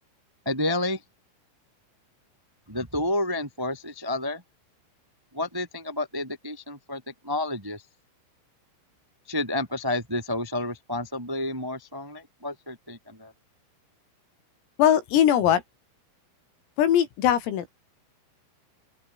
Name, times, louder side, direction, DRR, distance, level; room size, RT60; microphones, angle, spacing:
voice 1, 0.4-1.0 2.7-4.4 5.3-7.8 9.3-13.3, left 1 dB, 10° right, 1.0 m, -30 dB
voice 2, 14.8-15.6 16.8-17.7, left 10 dB, 85° left, 5.6 m, -20 dB
open air
omnidirectional pair, 5.9 m